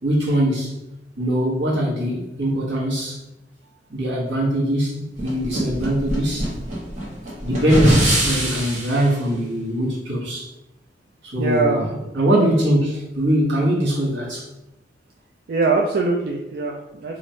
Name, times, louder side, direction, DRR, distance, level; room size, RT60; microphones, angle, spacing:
voice 1, 0.0-0.8 1.2-3.2 3.9-6.5 7.4-10.5 11.3-11.9 12.1-14.5, right 1 dB, 80° right, -5 dB, 1.2 m, -21 dB
sound 1, 5.2-9.1, right 1 dB, 45° right, 1.0 m, -23 dB
voice 2, 11.4-11.9 15.5-17.2, right 3 dB, 60° right, 0 dB, 0.3 m, -22 dB
3.1 x 2.4 x 4.2 m, 0.96 s
head